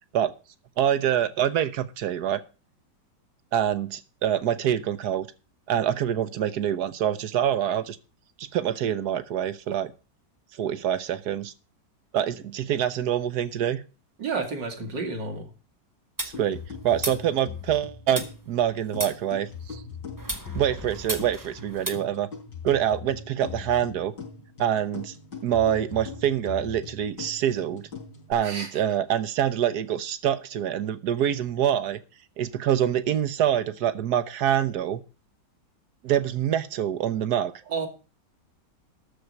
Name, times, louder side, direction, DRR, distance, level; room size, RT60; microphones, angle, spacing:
voice 1, 0.8-2.4 3.5-5.3 5.7-8.0 8.4-9.9 10.6-11.5 12.1-13.8 16.2-19.8 20.5-22.3 22.6-24.1 24.6-25.1 25.4-27.9 28.3-32.0 32.4-35.0 36.0-37.5, right 10 dB, 65° right, 13 dB, 1.4 m, -25 dB
voice 2, 14.2-15.5 28.4-28.7 37.7-37.9, right 4 dB, 90° right, 4 dB, 3.0 m, -30 dB
sound 1, 16.2-17.8 18.2-19.7 20.2-21.9, right 1 dB, 10° right, 1.4 m, -35 dB
sound 2, 16.3-28.3, left 5 dB, 85° left, 4.7 m, -40 dB
13.0 x 4.6 x 8.1 m, 0.34 s
omnidirectional pair, 1.9 m